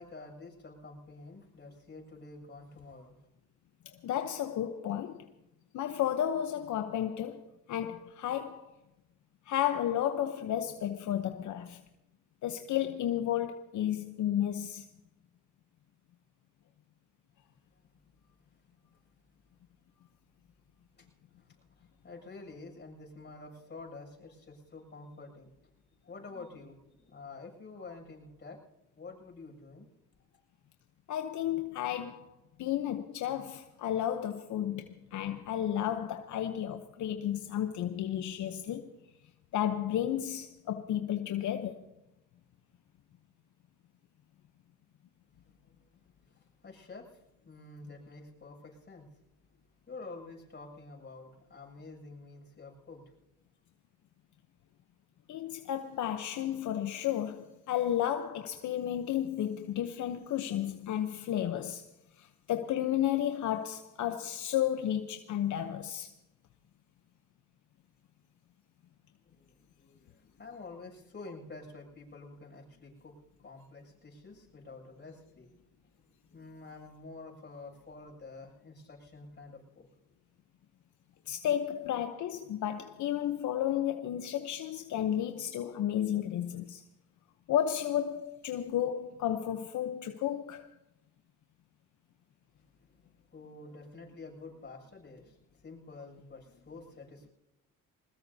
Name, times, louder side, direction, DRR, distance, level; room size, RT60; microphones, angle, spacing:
voice 1, 0.0-3.3 17.7-17.9 20.9-21.1 21.4-25.5 26.0-28.6 29.0-29.9 45.6-46.0 46.3-49.1 49.9-53.0 69.2-75.6 76.1-79.9 92.5-97.3, left 3 dB, 35° left, 7.2 m, -49 dB
voice 2, 3.9-5.3 5.7-8.7 9.5-11.8 12.4-14.9 31.1-32.2 32.6-38.9 39.5-41.8 55.3-61.8 62.2-66.1 81.3-86.8 87.5-90.7, left 11 dB, 70° left, 0.9 m, -32 dB
21.5 x 20.0 x 2.8 m
cardioid pair, 90°, 30 cm